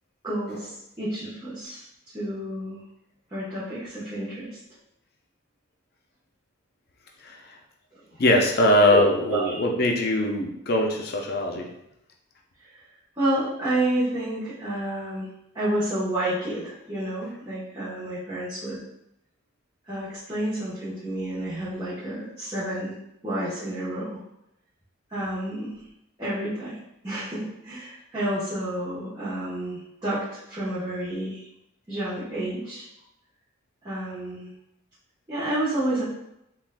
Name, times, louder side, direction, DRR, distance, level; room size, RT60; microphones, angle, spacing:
voice 1, 0.2-1.9 2.1-2.8 3.3-4.6 7.9-8.0 8.9-9.6 12.6-12.8 13.2-15.3 15.5-18.8 19.8-23.0 23.2-24.2 25.1-25.8 26.2-26.8 27.0-31.5 31.9-32.9 33.8-34.5 35.3-36.0, right 1 dB, 20° right, -12 dB, 0.9 m, -30 dB
voice 2, 7.2-7.6 8.2-11.7, left 1 dB, 50° left, 1 dB, 0.5 m, -22 dB
5.8 x 2.4 x 2.2 m, 0.82 s
head